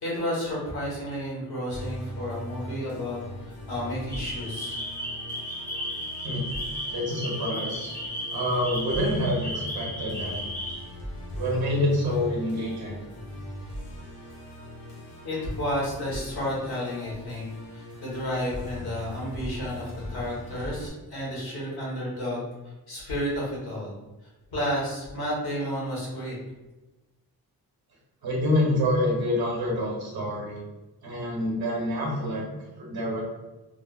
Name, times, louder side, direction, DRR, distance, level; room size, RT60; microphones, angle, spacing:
voice 1, 0.0-3.2 3.7-4.8 15.2-17.5 17.7-22.4 22.9-23.9 24.5-26.3, equal, 75° left, -6 dB, 1.4 m, -31 dB
Musical instrument, 1.7-20.9, left 1 dB, 40° left, 0.6 m, -40 dB
sound 1, 4.1-10.8, equal, 5° left, 0.4 m, -34 dB
voice 2, 6.9-7.9 8.3-10.4 11.3-13.0 28.2-30.6 31.0-32.4 32.8-33.2, left 1 dB, 75° right, -3 dB, 1.1 m, -27 dB
3.5 x 2.0 x 2.4 m, 1.1 s
wide cardioid pair, 160°, 38 cm